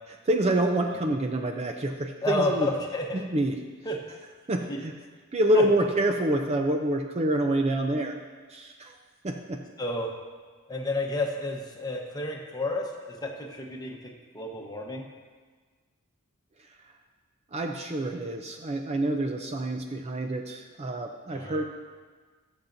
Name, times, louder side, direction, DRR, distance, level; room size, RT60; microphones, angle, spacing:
voice 1, 0.3-2.7 3.1-3.6 4.5-4.9 5.3-8.2 8.5-8.9 9.2-9.6 17.5-21.6, right 1 dB, 30° right, 4 dB, 0.5 m, -27 dB
voice 2, 2.2-3.2 3.8-4.0 4.7-4.8 5.5-5.6 9.8-10.2 10.7-15.0 21.3-21.6, left 1 dB, 15° left, 0 dB, 1.0 m, -31 dB
18.5 x 7.1 x 2.6 m, 1.5 s
head